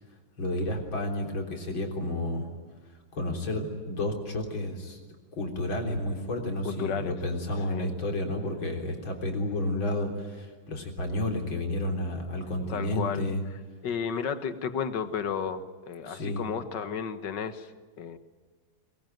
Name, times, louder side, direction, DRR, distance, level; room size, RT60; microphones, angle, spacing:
voice 1, 0.4-2.5 3.1-13.4 16.0-16.4, left 1 dB, 80° left, 3 dB, 4.5 m, -31 dB
voice 2, 6.6-7.1 7.7-7.9 12.7-13.3 13.8-17.7 18.0-18.2, left 7 dB, 65° left, 11 dB, 2.0 m, -32 dB
22.5 x 21.5 x 9.3 m, 1.4 s
omnidirectional pair, 2.1 m